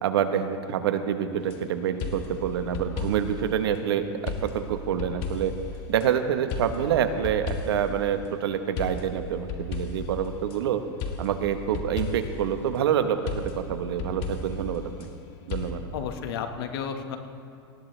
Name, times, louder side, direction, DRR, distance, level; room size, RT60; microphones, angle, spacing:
voice 1, 0.0-5.5 5.9-10.8 11.2-15.1 15.5-15.9, right 9 dB, 85° right, 8 dB, 1.1 m, -27 dB
sound 1, 1.4-1.6 2.0-3.5 4.3-6.1 6.5-8.0 8.8-10.6 11.0-12.5 13.3-15.1 15.5-15.7, left 4 dB, 45° left, 1.8 m, -34 dB
voice 2, 15.9-17.2, left 7 dB, 75° left, 6 dB, 1.5 m, -32 dB
19.0 x 17.0 x 3.3 m, 2.3 s
supercardioid pair, 130°, 13 cm